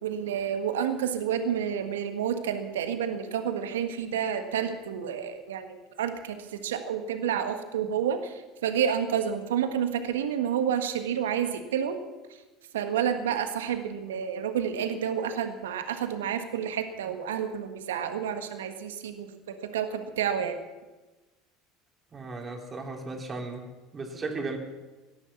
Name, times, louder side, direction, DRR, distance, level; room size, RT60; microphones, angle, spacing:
voice 1, 0.0-12.0 12.7-20.6, right 8 dB, 80° right, 7 dB, 1.5 m, -30 dB
voice 2, 22.1-23.7 23.9-24.6, right 3 dB, 30° right, 1 dB, 3.6 m, -35 dB
18.0 x 11.5 x 7.1 m, 1.2 s
hypercardioid pair, 75°, 0 cm